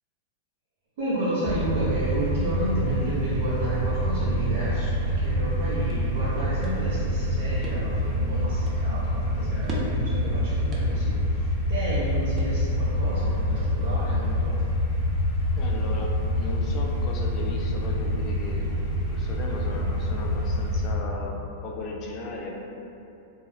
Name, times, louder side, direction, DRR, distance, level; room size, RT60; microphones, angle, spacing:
voice 1, 1.0-14.5, right 1 dB, 60° right, -10 dB, 0.8 m, -31 dB
sound 1, 1.4-20.9, equal, 10° left, 1.0 m, -26 dB
sound 2, 5.5-13.0, right 1 dB, 25° right, 0.5 m, -43 dB
voice 2, 15.6-18.7 19.0-21.4 21.6-22.6, left 2 dB, 35° left, -1 dB, 0.3 m, -36 dB
2.6 x 2.2 x 3.2 m, 2.7 s
hypercardioid pair, 135°, 0 cm